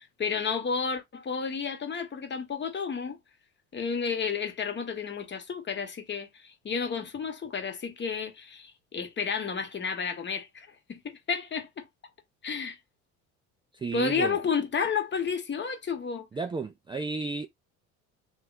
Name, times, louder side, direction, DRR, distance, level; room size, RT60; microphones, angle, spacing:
voice 1, 0.0-3.2 3.7-11.9 12.4-12.8 13.9-16.3, left 6 dB, 30° left, 1.1 m, -31 dB
voice 2, 13.7-14.4 16.3-17.5, right 4 dB, 15° right, 0.4 m, -32 dB
3.0 x 2.2 x 3.8 m
supercardioid pair, 80°, 36 cm